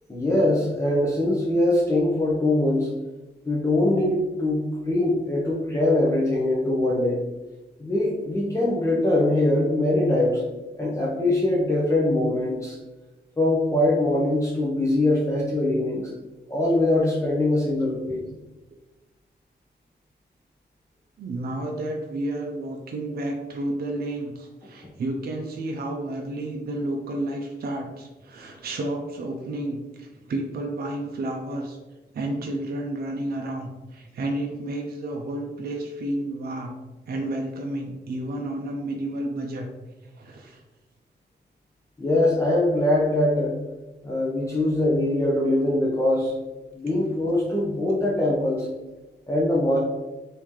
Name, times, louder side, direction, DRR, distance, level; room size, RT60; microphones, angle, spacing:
voice 1, 0.1-2.9 3.5-7.2 7.8-10.4 10.8-12.8 13.4-16.1 16.5-18.2 42.0-43.6 44.0-46.3 46.7-48.7 49.3-49.8, left 1 dB, 15° left, -6 dB, 0.6 m, -22 dB
voice 2, 21.2-31.8 32.1-36.8 37.1-39.7 40.1-40.6, right 1 dB, 60° right, 1 dB, 0.5 m, -31 dB
3.0 x 2.7 x 3.6 m, 1.1 s
wide cardioid pair, 110°, 18 cm